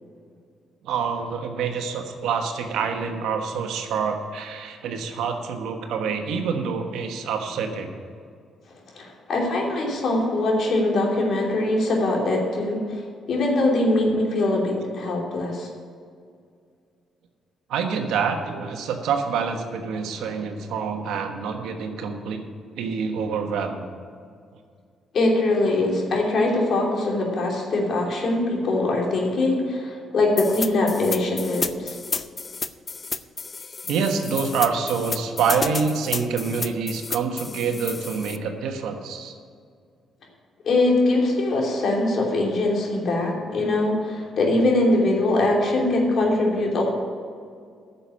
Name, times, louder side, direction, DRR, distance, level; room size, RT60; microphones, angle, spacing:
voice 1, 0.8-8.0 17.7-22.4 22.8-23.9 33.9-39.3, right 5 dB, 85° right, 4 dB, 1.3 m, -26 dB
voice 2, 8.9-15.7 25.1-32.0 40.6-46.8, left 2 dB, 60° left, -1 dB, 3.1 m, -22 dB
sound 1, 30.4-38.4, left 4 dB, 35° left, 0.5 m, -31 dB
9.9 x 6.9 x 8.5 m, 2.2 s
cardioid pair, 90°, 0 cm